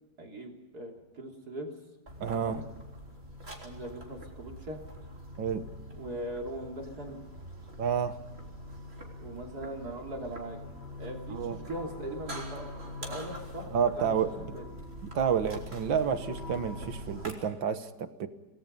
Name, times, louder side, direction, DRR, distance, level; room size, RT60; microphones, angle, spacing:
voice 1, 0.2-1.7 2.3-2.7 3.6-4.8 6.0-7.2 9.2-10.6 11.0-14.2 14.5-14.6, right 1 dB, 55° right, 1 dB, 3.8 m, -40 dB
sound 1, 2.1-17.3, equal, 30° right, 3.8 m, -43 dB
voice 2, 2.2-2.6 5.4-5.6 7.8-8.2 11.3-11.6 13.7-14.3 15.1-18.3, right 7 dB, 80° right, 10 dB, 2.0 m, -29 dB
27.5 x 19.5 x 5.6 m, 1.1 s
omnidirectional pair, 2.1 m